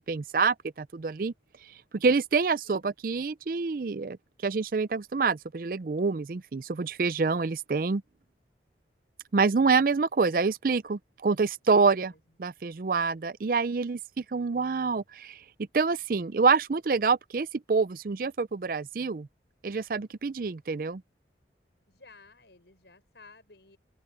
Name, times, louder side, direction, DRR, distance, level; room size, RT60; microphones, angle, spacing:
voice 1, 0.1-1.3 1.9-4.2 4.4-8.0 9.3-12.1 12.4-14.0 14.3-15.4 15.7-19.3 19.6-21.0, right 4 dB, 50° right, 0.5 m, -26 dB
voice 2, 11.7-12.2 21.9-23.8, left 3 dB, 75° left, 6.7 m, -55 dB
open air
head